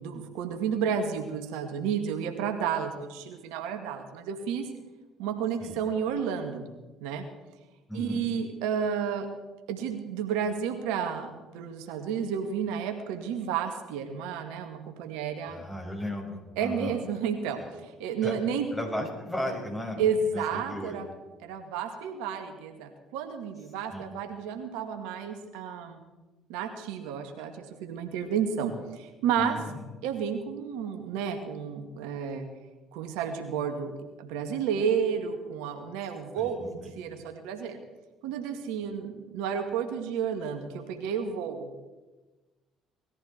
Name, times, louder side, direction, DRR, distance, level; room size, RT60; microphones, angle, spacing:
voice 1, 0.0-4.7 5.2-6.7 7.0-7.2 7.9-9.3 9.7-15.6 16.6-18.7 20.0-21.1 21.4-26.0 26.5-29.6 30.0-32.5 32.9-37.8 38.2-41.9, right 7 dB, 80° right, 5 dB, 1.9 m, -31 dB
voice 2, 15.5-17.0 17.5-17.7 18.2-18.3 18.7-21.0 23.9-24.1 29.4-29.8 36.4-37.0, left 1 dB, 15° left, 0 dB, 6.5 m, -36 dB
20.0 x 14.0 x 4.5 m, 1.2 s
hypercardioid pair, 65°, 0 cm